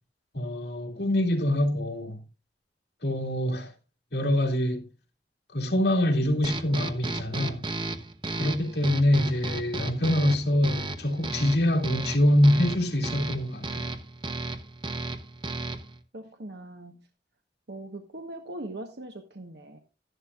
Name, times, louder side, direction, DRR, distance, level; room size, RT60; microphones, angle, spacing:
voice 1, 0.3-2.2 3.0-3.7 4.1-4.9 5.5-7.7 8.4-13.9, left 1 dB, 65° left, 2.6 m, -25 dB
sound 1, 6.4-16.0, right 2 dB, 25° right, 0.9 m, -34 dB
voice 2, 16.1-17.1 17.7-19.8, right 1 dB, 70° right, 1.2 m, -41 dB
12.5 x 11.5 x 2.4 m
head